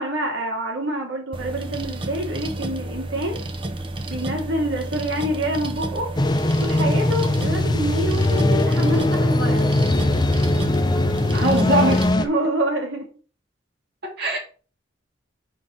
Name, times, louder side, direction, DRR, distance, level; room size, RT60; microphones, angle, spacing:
voice 1, 0.0-3.4 4.1-6.1 6.6-9.7 12.2-13.1, right 1 dB, 70° right, 0 dB, 2.5 m, -26 dB
sound 1, 1.3-12.1, right 2 dB, 25° right, 0.6 m, -31 dB
sound 2, 6.2-12.3, left 1 dB, 20° left, 0.4 m, -20 dB
voice 2, 11.3-12.0 14.2-14.4, right 1 dB, 50° right, -2 dB, 2.6 m, -20 dB
5.0 x 4.5 x 5.6 m, 0.37 s
head